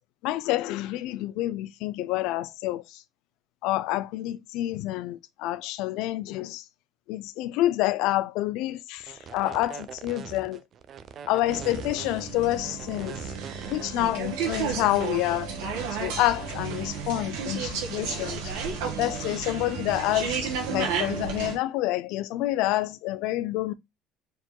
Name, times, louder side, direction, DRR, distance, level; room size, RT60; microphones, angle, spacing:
voice 1, 0.2-3.0 3.6-6.6 7.1-10.6 11.3-13.3 13.7-15.6 15.9-18.5 19.0-23.7, left 16 dB, 75° left, 0.4 m, -28 dB
sound 1, 9.0-14.8, right 7 dB, 45° right, 0.6 m, -42 dB
sound 2, 11.5-21.5, right 6 dB, 85° right, 1.7 m, -32 dB
4.3 x 4.2 x 2.2 m
supercardioid pair, 105°, 0 cm